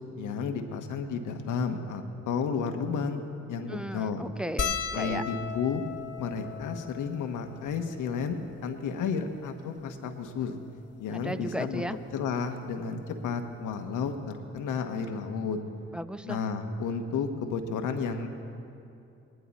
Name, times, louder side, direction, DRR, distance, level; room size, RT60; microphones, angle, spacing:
voice 1, 0.1-3.2 3.5-4.2 4.9-5.8 6.2-10.5 11.0-11.8 12.1-15.6 16.2-18.3, left 5 dB, 85° left, 6 dB, 1.0 m, -32 dB
voice 2, 3.7-5.2 11.1-12.0 15.9-16.4, equal, 5° right, 11 dB, 0.7 m, -35 dB
sound 1, 4.6-9.2 9.9-10.0 10.2-10.4 11.7-11.9 13.4-13.5 13.7-13.9, left 6 dB, 55° left, 1.2 m, -37 dB
20.0 x 10.5 x 4.1 m, 2.7 s
supercardioid pair, 50°, 30 cm